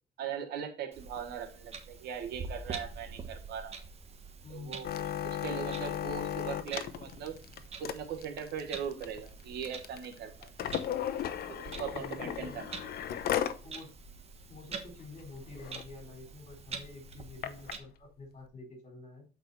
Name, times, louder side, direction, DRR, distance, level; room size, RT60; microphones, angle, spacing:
voice 1, 0.2-3.8 4.5-4.9 5.2-7.4 7.8-10.5 11.5-12.7, right 7 dB, 75° right, 4 dB, 1.3 m, -39 dB
Clock, 0.9-17.8, right 4 dB, 35° right, 1.3 m, -46 dB
voice 2, 4.4-4.8 11.8-12.6 13.6-13.9 14.5-19.3, left 3 dB, 40° left, 1 dB, 4.0 m, -48 dB
sound 1, 4.8-13.6 14.0-14.1 14.4-14.7 15.2-15.3 15.5-15.8 16.5-17.7 18.5-18.6, left 10 dB, 65° left, 0.8 m, -36 dB
8.0 x 4.7 x 4.0 m, 0.35 s
cardioid pair, 110°, 17 cm